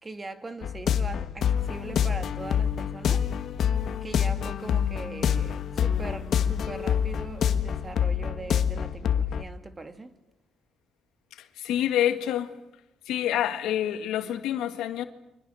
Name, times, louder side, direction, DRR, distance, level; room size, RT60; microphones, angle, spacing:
voice 1, 0.0-3.3 4.0-10.1, right 2 dB, 25° right, 2.3 m, -40 dB
sound 1, 0.6-9.4, left 8 dB, 65° left, 1.3 m, -26 dB
voice 2, 11.3-12.5 13.1-15.0, left 11 dB, 90° left, 1.9 m, -27 dB
29.5 x 24.5 x 6.5 m
cardioid pair, 90°, 0 cm